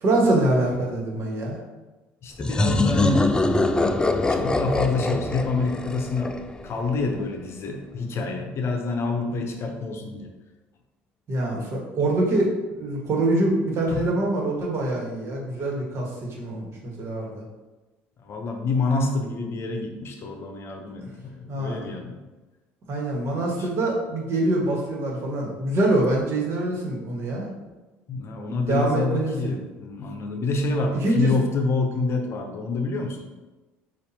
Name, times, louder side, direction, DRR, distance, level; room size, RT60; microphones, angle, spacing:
voice 1, 0.0-1.6 11.3-16.1 16.4-17.4 21.5-21.8 22.9-27.5 28.7-29.5 31.0-31.4, right 2 dB, 50° right, -2 dB, 1.5 m, -24 dB
voice 2, 2.2-3.3 4.3-6.4 6.6-10.3 13.9-14.1 18.2-22.2 23.3-23.7 28.1-33.3, left 3 dB, 45° left, 4 dB, 0.7 m, -27 dB
sound 1, 2.4-7.0, left 2 dB, 15° left, 0.3 m, -23 dB
6.8 x 2.6 x 2.8 m, 1.1 s
supercardioid pair, 75°, 6 cm